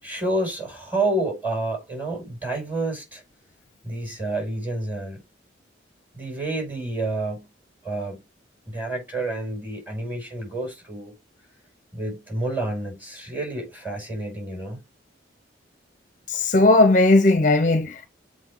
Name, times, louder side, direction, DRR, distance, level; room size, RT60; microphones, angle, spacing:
voice 1, 0.0-3.2 3.8-5.2 6.1-7.5 7.8-8.2 8.7-11.1 11.9-14.8, right 2 dB, 10° right, 5.6 m, -29 dB
voice 2, 16.3-18.1, left 2 dB, 40° left, 0.7 m, -17 dB
7.6 x 5.1 x 3.7 m
head